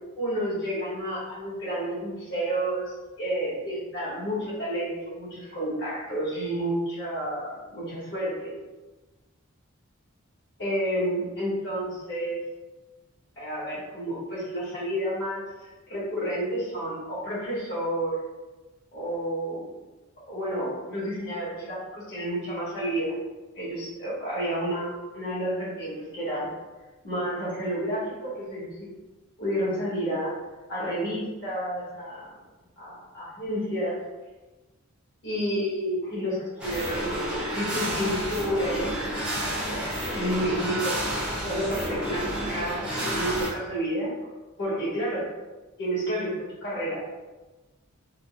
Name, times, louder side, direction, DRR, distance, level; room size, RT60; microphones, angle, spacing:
voice 1, 0.2-8.6 10.6-12.4 13.4-18.1 18.9-19.7 20.3-23.2 23.5-26.5 27.0-28.9 29.4-30.3 30.7-32.3 32.8-34.0 35.2-37.1 37.5-39.3 39.6-41.1 41.4-44.1 44.6-45.3 45.8-46.3 46.6-47.0, right 1 dB, 55° left, -9 dB, 1.4 m, -30 dB
sound 1, 36.6-43.5, right 1 dB, 5° right, 0.6 m, -30 dB
3.8 x 2.1 x 2.4 m, 1.2 s
head